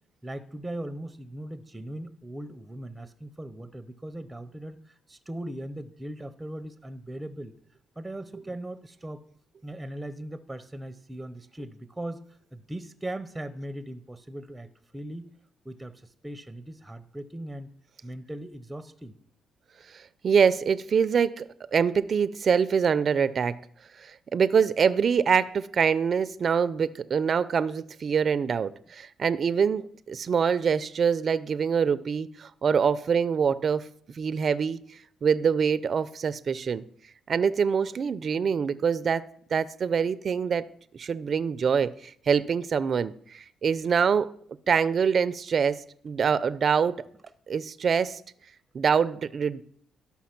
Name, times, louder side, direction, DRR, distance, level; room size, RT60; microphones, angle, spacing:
voice 1, 0.2-7.5 8.0-9.2 9.6-15.3 15.6-17.7 18.0-19.1, right 1 dB, 10° right, 11 dB, 0.7 m, -39 dB
voice 2, 19.9-23.6 24.0-33.9 34.2-34.8 35.2-36.8 37.3-39.3 39.5-40.6 40.9-44.3 44.7-47.0 47.5-48.2 48.7-49.6, right 6 dB, 50° right, 14 dB, 0.5 m, -25 dB
12.5 x 5.7 x 5.9 m, 0.62 s
cardioid pair, 90°, 0 cm